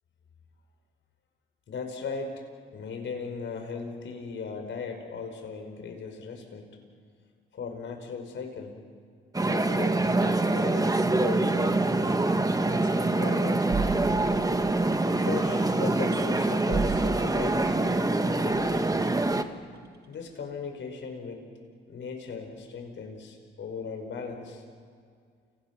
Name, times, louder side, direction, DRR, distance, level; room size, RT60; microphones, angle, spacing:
voice 1, 1.7-2.4 2.7-6.8 7.5-8.8 9.4-12.3 12.7-13.7 15.2-19.2 20.1-21.4 21.9-24.6, left 5 dB, 65° left, 4 dB, 5.5 m, -38 dB
sound 1, 9.3-19.4, right 2 dB, 15° right, 1.6 m, -25 dB
sound 2, 12.5-12.7 13.7-15.4 15.8-19.0 19.7-19.9, right 5 dB, 50° right, 2.0 m, -36 dB
29.5 x 28.5 x 6.2 m, 2.1 s
supercardioid pair, 65°, 21 cm